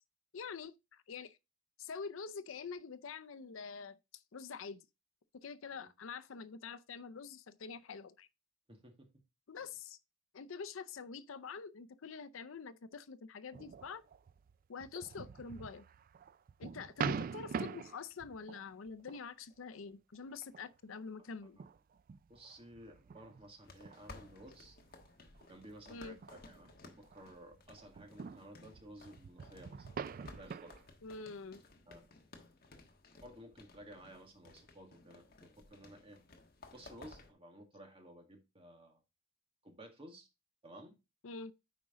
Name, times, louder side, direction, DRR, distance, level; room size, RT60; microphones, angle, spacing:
voice 1, 0.3-1.4 1.8-4.8 5.3-8.3 9.5-10.0 10.3-14.0 14.7-15.8 16.6-21.6 25.9-26.2 31.0-31.6 41.2-41.5, left 5 dB, 75° left, 0.6 m, -46 dB
voice 2, 8.7-9.1 21.4-21.6 22.3-24.8 25.4-29.9 30.2-30.7 31.9-32.0 33.2-36.2 36.7-39.0 39.6-40.3 40.6-41.0, right 1 dB, 30° right, 1.9 m, -55 dB
sound 1, 13.5-19.2 19.6-19.9 20.4-21.0 21.6-27.3 27.5-30.8, right 6 dB, 45° right, 0.3 m, -44 dB
sound 2, 23.6-37.3, left 3 dB, 50° left, 1.4 m, -58 dB
8.9 x 5.1 x 3.7 m
head